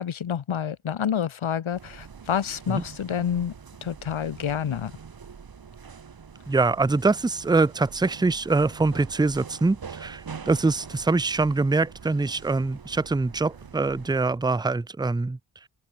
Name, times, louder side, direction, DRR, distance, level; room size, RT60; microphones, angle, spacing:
voice 1, 0.0-3.5 3.8-4.9, left 8 dB, 75° left, 2.2 m, -28 dB
sound 1, 1.7-14.3, right 6 dB, 45° right, 2.6 m, -44 dB
voice 2, 6.5-15.4, right 3 dB, 10° right, 0.5 m, -24 dB
Motorcycle, 9.8-14.9, right 8 dB, 90° right, 5.0 m, -56 dB
open air
wide cardioid pair, 175°, 49 cm